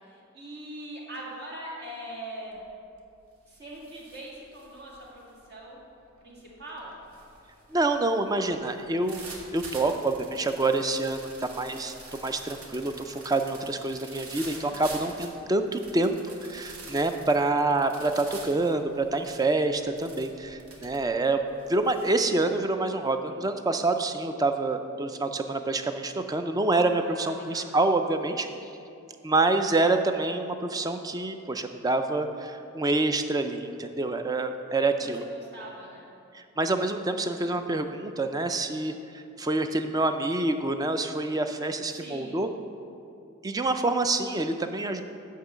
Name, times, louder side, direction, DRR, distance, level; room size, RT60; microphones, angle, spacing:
voice 1, 0.0-2.6 3.5-5.8 6.2-6.9 14.6-15.0 18.5-18.7 27.0-27.7 34.9-36.1 41.9-42.4, right 1 dB, 50° right, -4 dB, 1.9 m, -42 dB
sound 1, 2.5-2.8 3.2-22.1, right 3 dB, 85° right, 1.3 m, -47 dB
voice 2, 7.7-16.2 16.4-21.4 21.7-28.5 29.2-35.2 36.3-42.5 43.4-45.0, right 2 dB, 15° right, 7 dB, 0.4 m, -27 dB
10.5 x 3.8 x 7.1 m, 2.6 s
head